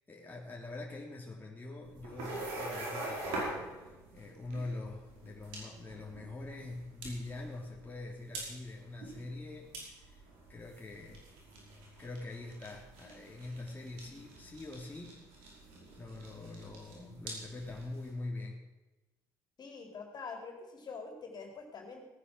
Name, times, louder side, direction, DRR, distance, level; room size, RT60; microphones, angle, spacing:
voice 1, 0.0-10.2 10.5-11.3 12.0-15.2 16.0-18.6, left 2 dB, 20° left, -2 dB, 3.5 m, -44 dB
sound 1, 1.8-18.1, right 2 dB, 80° right, 5.3 m, -45 dB
voice 2, 19.6-22.0, left 4 dB, 45° left, 3 dB, 4.3 m, -45 dB
18.0 x 9.8 x 6.3 m, 1.1 s
hypercardioid pair, 65°, 10 cm